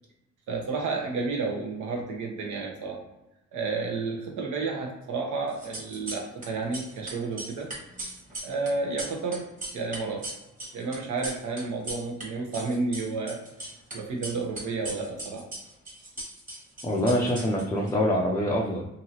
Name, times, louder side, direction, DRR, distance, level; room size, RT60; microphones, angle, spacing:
voice 1, 0.5-3.0 3.5-7.7 8.4-10.3 10.7-13.4 13.9-15.5, right 3 dB, 75° right, 0 dB, 0.9 m, -31 dB
sound 1, 5.5-6.5 6.7-12.2 12.5-13.9 14.2-17.9, right 1 dB, 25° right, 1.3 m, -38 dB
voice 2, 16.8-18.9, left 1 dB, 10° left, -4 dB, 0.5 m, -25 dB
2.8 x 2.6 x 2.8 m, 0.94 s
cardioid pair, 90°, 30 cm